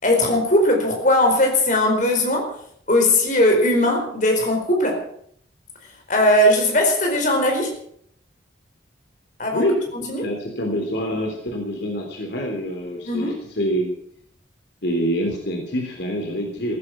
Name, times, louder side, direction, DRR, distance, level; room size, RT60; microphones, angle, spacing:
voice 1, 0.0-2.6 2.9-5.0 6.1-7.8 9.4-9.7 10.1-10.3 13.1-13.4, left 1 dB, 45° left, 2 dB, 4.5 m, -19 dB
voice 2, 9.5-13.9 14.8-16.8, equal, 65° left, 1 dB, 3.4 m, -26 dB
15.0 x 14.5 x 6.0 m, 0.66 s
head